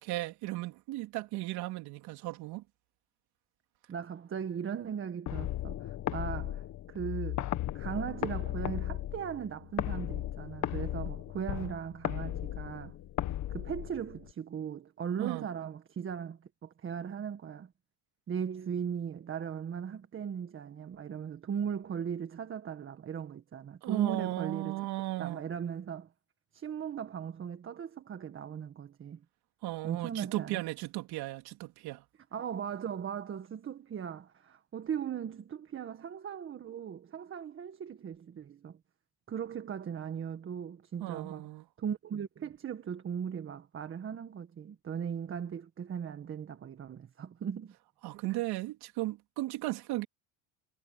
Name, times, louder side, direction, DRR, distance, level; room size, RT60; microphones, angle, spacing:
voice 1, 0.0-2.6 15.2-15.5 23.8-25.4 29.6-32.0 41.0-41.6 48.0-50.1, right 18 dB, 65° right, 3.6 m, -36 dB
voice 2, 3.9-13.0 13.5-17.7 18.3-24.9 25.2-26.1 26.5-29.2 29.8-30.6 32.3-38.8 39.3-41.4 41.8-47.7, right 8 dB, 30° right, 1.7 m, -38 dB
sound 1, 5.3-14.3, left 13 dB, 40° left, 1.6 m, -36 dB
cardioid pair, 130°, 42 cm